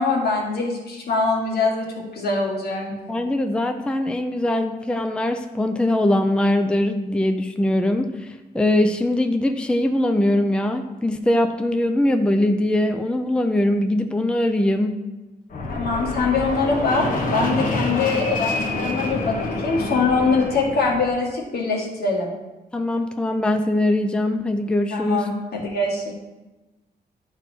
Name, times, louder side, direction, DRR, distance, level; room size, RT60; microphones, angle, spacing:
voice 1, 0.0-1.9 2.1-2.8 15.7-22.3 24.9-26.1, left 3 dB, 75° left, -1 dB, 1.8 m, -23 dB
voice 2, 2.9-15.0 22.7-25.2, left 1 dB, 5° left, 6 dB, 0.4 m, -21 dB
Fixed-wing aircraft airplane, 15.5-21.1, left 2 dB, 55° left, 1.3 m, -27 dB
11.0 x 4.0 x 4.5 m, 1.1 s
wide cardioid pair, 120°, 17 cm